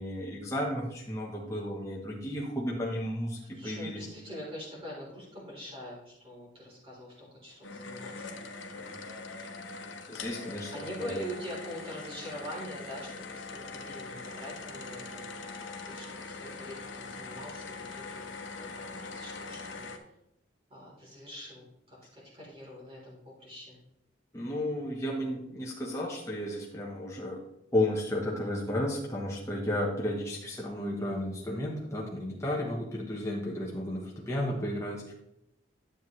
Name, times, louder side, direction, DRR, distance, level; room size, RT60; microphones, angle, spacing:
voice 1, 0.0-4.0 8.8-9.0 10.1-11.2 24.3-27.4 27.7-35.1, left 1 dB, 15° left, -3 dB, 1.0 m, -33 dB
voice 2, 3.4-8.4 10.7-15.2 15.8-18.2 18.6-18.7 19.0-19.8 20.7-23.8, equal, 30° right, -5 dB, 3.4 m, -44 dB
sound 1, 7.6-20.0, left 3 dB, 75° left, 1.0 m, -42 dB
10.0 x 7.6 x 3.1 m, 0.81 s
head